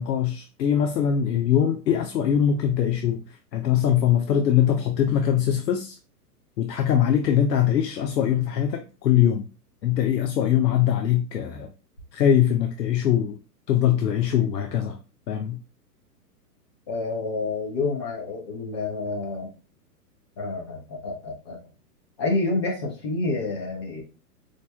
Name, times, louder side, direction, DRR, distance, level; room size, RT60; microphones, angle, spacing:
voice 1, 0.0-6.0 6.6-9.5 9.8-11.7 12.1-13.4 13.7-15.0 15.3-15.6, left 9 dB, 90° left, 0.6 m, -22 dB
voice 2, 16.9-19.5 20.4-21.6 22.2-24.0, left 3 dB, 20° left, 0.4 m, -28 dB
4.7 x 2.6 x 2.2 m
hypercardioid pair, 135°, 49 cm